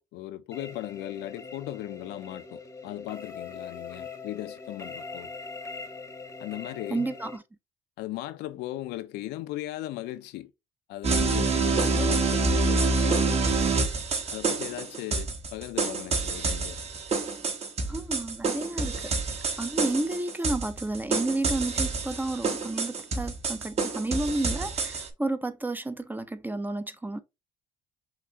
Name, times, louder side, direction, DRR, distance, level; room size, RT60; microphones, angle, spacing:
voice 1, 0.0-5.3 6.4-7.1 8.0-10.5 10.9-12.9 14.3-16.8, left 15 dB, 85° left, 0.5 m, -38 dB
sound 1, 0.5-7.4, left 4 dB, 15° left, 0.8 m, -42 dB
voice 2, 6.9-7.3 17.9-19.1 19.6-27.2, right 2 dB, 10° right, 0.5 m, -31 dB
sound 2, 11.0-25.1, right 3 dB, 40° right, 0.9 m, -27 dB
5.8 x 2.5 x 2.9 m
cardioid pair, 110°, 17 cm